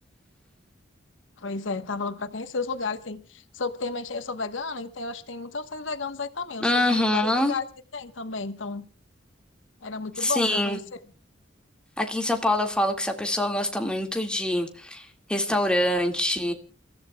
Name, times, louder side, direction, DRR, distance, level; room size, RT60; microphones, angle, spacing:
voice 1, 1.4-7.6 7.9-8.8 9.8-10.8, left 4 dB, 85° left, 11 dB, 1.1 m, -32 dB
voice 2, 6.6-7.5 10.2-10.8 12.0-16.5, left 1 dB, 5° left, 3 dB, 1.9 m, -25 dB
29.5 x 14.5 x 2.3 m, 0.37 s
head